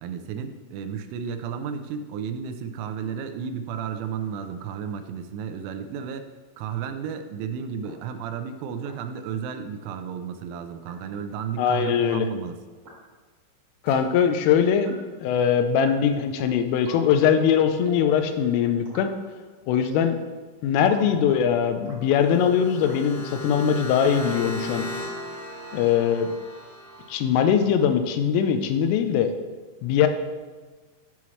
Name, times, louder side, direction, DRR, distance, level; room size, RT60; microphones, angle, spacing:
voice 1, 0.0-6.3 6.6-12.5, right 7 dB, 85° right, 7 dB, 3.0 m, -33 dB
sound 1, 5.8-5.9 6.9-7.0 7.8-7.9 8.8-8.9 9.8-9.9 10.8-10.9 11.8-11.9 12.8-12.9 13.9-14.0 14.9-15.0 15.9-16.0 16.8-17.1 17.9-18.1 18.9-19.1 19.8-20.1 20.9-21.1 21.9-22.0 22.8-23.0, right 1 dB, 60° right, 1.8 m, -44 dB
voice 2, 11.6-12.3 13.8-15.0 15.2-19.1 19.7-20.2 20.6-24.9 25.7-26.3 27.1-29.3 29.8-30.1, left 8 dB, 90° left, 7 dB, 3.2 m, -21 dB
sound 2, 22.1-27.1, left 1 dB, 60° left, 1.8 m, -36 dB
11.0 x 5.8 x 3.1 m, 1.4 s
omnidirectional pair, 5.6 m